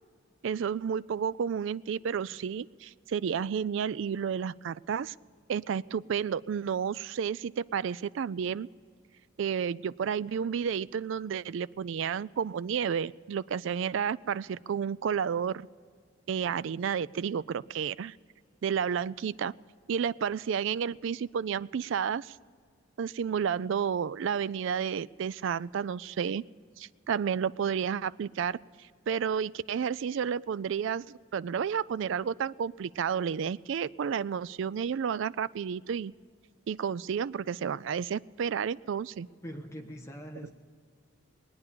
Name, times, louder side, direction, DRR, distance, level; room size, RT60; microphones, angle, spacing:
voice 1, 0.4-5.1 5.5-8.7 9.4-15.7 16.3-18.2 18.6-19.5 19.9-22.4 23.0-26.4 26.8-28.6 29.1-36.1 36.7-39.3 40.4-40.5, right 7 dB, 60° right, 19 dB, 0.3 m, -31 dB
voice 2, 39.4-40.5, equal, 15° left, 2 dB, 1.2 m, -42 dB
21.0 x 9.5 x 6.9 m, 2.1 s
head